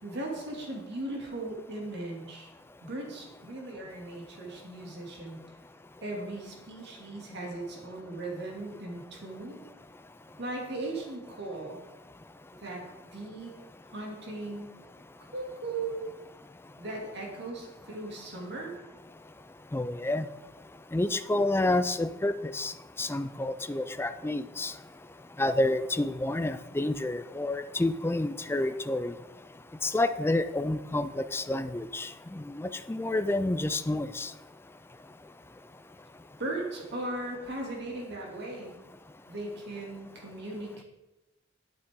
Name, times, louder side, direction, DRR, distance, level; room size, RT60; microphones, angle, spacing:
voice 1, 0.0-2.5 2.8-5.4 6.0-9.6 10.4-11.8 12.6-12.8 13.1-13.5 13.9-14.8 15.3-16.1 16.8-18.7 36.4-38.8 39.3-40.8, right 2 dB, 60° right, -1 dB, 2.6 m, -38 dB
voice 2, 12.1-12.6 16.5-16.8 19.2-35.3 35.6-35.8 36.1-36.2, left 2 dB, 10° left, 10 dB, 0.4 m, -30 dB
11.5 x 8.9 x 3.7 m, 1.0 s
head